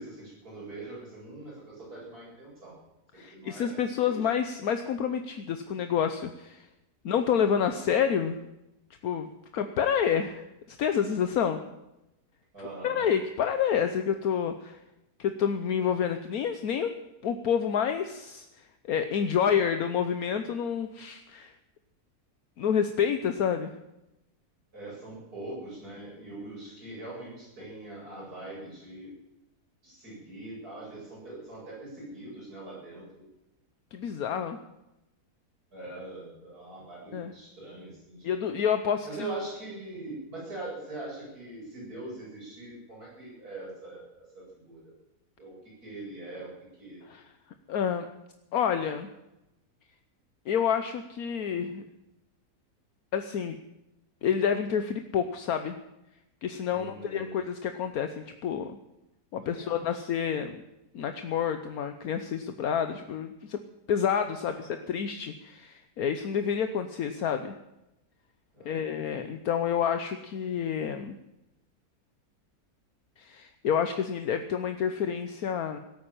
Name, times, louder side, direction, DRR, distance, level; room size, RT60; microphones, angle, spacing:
voice 1, 0.0-2.7 3.3-4.3 12.5-13.1 24.7-29.1 29.8-33.0 35.7-38.5 39.0-44.9 45.4-46.5 46.8-47.0 56.7-57.4 59.4-60.0 64.4-64.8 68.5-68.9, right 2 dB, 75° right, -5 dB, 8.7 m, -42 dB
voice 2, 3.1-6.7 7.0-8.4 9.0-11.6 12.8-14.8 15.2-16.9 17.2-21.5 22.6-23.7 33.9-34.6 37.1-37.3 38.2-39.3 47.1-47.2 47.7-48.1 48.5-49.1 50.5-51.8 53.1-53.6 54.2-55.8 56.4-58.8 59.3-60.6 60.9-63.6 63.9-67.5 68.6-71.2 73.2-75.8, left 8 dB, 75° left, 8 dB, 1.3 m, -28 dB
17.5 x 8.9 x 8.7 m, 0.94 s
omnidirectional pair, 1.6 m